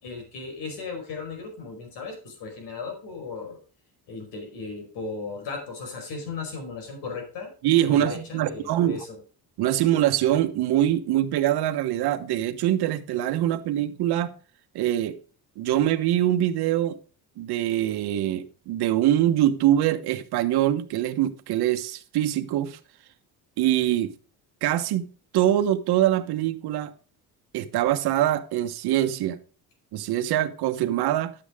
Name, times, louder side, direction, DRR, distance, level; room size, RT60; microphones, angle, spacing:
voice 1, 0.0-3.6 4.1-7.5 7.9-9.2, left 4 dB, 85° left, 5.0 m, -36 dB
voice 2, 7.6-9.0 9.6-14.3 14.7-15.2 15.6-17.0 17.4-22.8 23.6-24.1 24.6-26.9 27.5-29.4 29.9-31.3, right 12 dB, 75° right, 1.2 m, -24 dB
11.0 x 8.5 x 3.6 m
cardioid pair, 150°, 39 cm